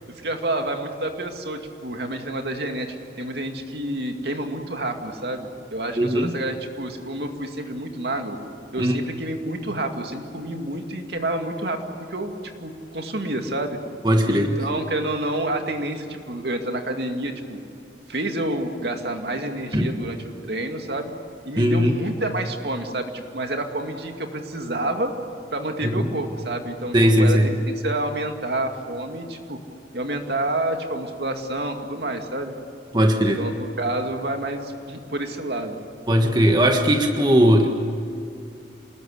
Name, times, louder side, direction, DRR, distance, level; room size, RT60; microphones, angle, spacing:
voice 1, 0.2-8.4 8.7-11.8 12.1-13.8 14.2-17.6 18.1-20.2 20.4-21.1 21.4-25.1 25.5-27.5 27.8-29.6 29.9-32.5 33.2-35.8, right 1 dB, 65° right, 4 dB, 2.4 m, -29 dB
voice 2, 6.0-6.3 8.8-9.0 14.0-14.5 19.7-19.9 21.6-21.9 25.8-26.1 26.9-27.5 32.9-33.5 36.1-37.7, equal, 25° right, 3 dB, 1.5 m, -18 dB
27.5 x 20.5 x 8.3 m, 2.6 s
head